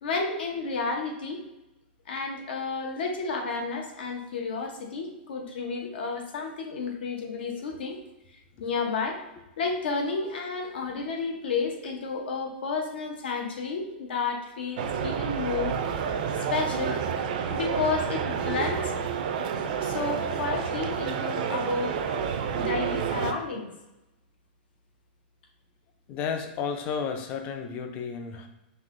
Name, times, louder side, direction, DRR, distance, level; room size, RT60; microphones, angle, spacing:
voice 1, 0.0-1.4 2.1-8.0 8.3-9.2 9.6-15.8 16.3-17.0 17.5-19.0 19.8-22.0 22.5-23.7, left 4 dB, 80° left, 2 dB, 0.9 m, -31 dB
sound 1, 14.8-23.3, right 7 dB, 55° right, 0.4 m, -29 dB
voice 2, 26.1-28.5, left 6 dB, 30° left, 6 dB, 0.4 m, -32 dB
5.5 x 2.8 x 2.6 m, 0.96 s
supercardioid pair, 160°, 5 cm